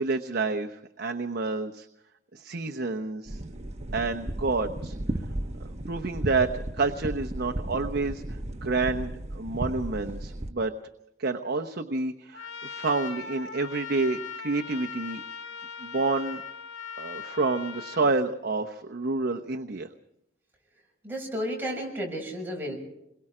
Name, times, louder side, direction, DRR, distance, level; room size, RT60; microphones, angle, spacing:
voice 1, 0.0-1.9 2.3-3.4 3.9-5.0 5.9-10.7 11.2-15.2 15.8-16.4 17.0-19.9, right 3 dB, 55° right, 4 dB, 0.9 m, -29 dB
sound 1, 3.3-10.5, right 1 dB, 35° right, 1.2 m, -35 dB
Trumpet, 12.3-18.0, left 6 dB, 80° left, 1.5 m, -40 dB
voice 2, 21.0-22.8, equal, 10° right, -2 dB, 6.7 m, -32 dB
28.5 x 22.0 x 5.0 m, 0.83 s
head